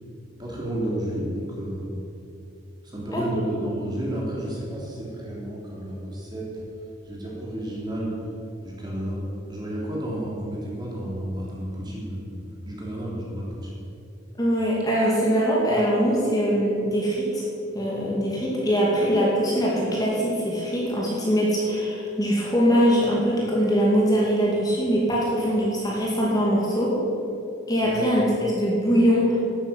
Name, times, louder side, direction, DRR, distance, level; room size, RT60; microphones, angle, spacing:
voice 1, 0.4-1.9 2.8-6.5 7.0-8.1 8.6-12.4 12.6-13.8 18.0-18.2 27.8-28.2, right 1 dB, 20° right, -4 dB, 3.3 m, -31 dB
voice 2, 14.4-17.4 17.7-27.0 27.7-29.4, equal, 20° left, -5 dB, 2.4 m, -22 dB
12.0 x 8.9 x 9.2 m, 2.7 s
head